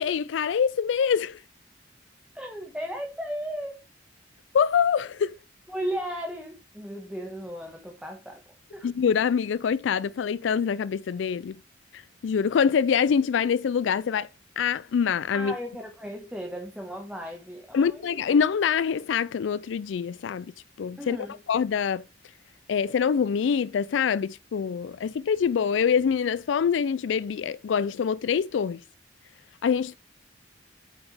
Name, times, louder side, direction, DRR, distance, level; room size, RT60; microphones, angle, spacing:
voice 1, 0.0-1.4 4.5-5.4 8.8-11.6 11.9-14.3 14.6-15.5 17.7-20.5 20.8-21.2 21.5-22.0 22.7-28.8 29.6-29.9, left 7 dB, 80° left, 0.4 m, -25 dB
voice 2, 2.3-3.8 5.7-8.4 8.7-8.9 15.3-18.0 21.0-21.4, equal, 5° right, 1.4 m, -35 dB
9.0 x 5.9 x 3.4 m
head